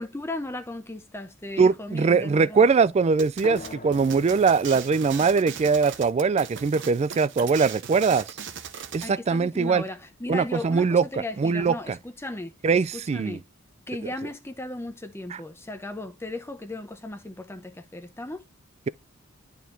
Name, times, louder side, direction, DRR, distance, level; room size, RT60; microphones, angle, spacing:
voice 1, 0.0-2.7 9.0-13.4 13.9-18.4, left 2 dB, 10° left, 0.7 m, -36 dB
voice 2, 1.6-8.4 8.9-9.8 10.3-11.0 11.4-12.0 12.6-13.4 15.3-15.4, right 5 dB, 30° right, 0.3 m, -22 dB
sound 1, 3.2-9.1, right 7 dB, 60° right, 1.0 m, -39 dB
sound 2, 3.4-8.5, left 3 dB, 35° left, 1.2 m, -45 dB
11.5 x 4.4 x 2.6 m
head